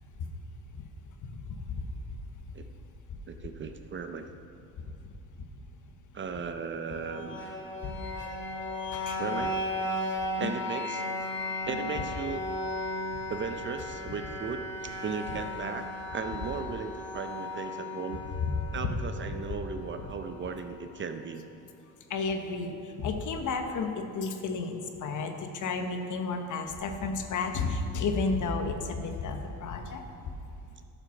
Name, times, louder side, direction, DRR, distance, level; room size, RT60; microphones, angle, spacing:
voice 1, 1.2-1.8 7.8-7.9 8.9-9.2 10.4-10.5 11.7-11.8 18.4-18.9 22.1-30.1, left 4 dB, 50° left, 5 dB, 1.1 m, -32 dB
voice 2, 3.3-4.2 6.1-7.4 9.2-9.6 10.4-11.1 11.7-12.4 13.3-15.9 16.1-18.2 18.7-21.4, right 5 dB, 30° right, 7 dB, 0.5 m, -36 dB
sound 1, 6.9-20.8, left 1 dB, 30° left, 1.7 m, -36 dB
11.5 x 5.8 x 5.9 m, 2.5 s
cardioid pair, 105°, 38 cm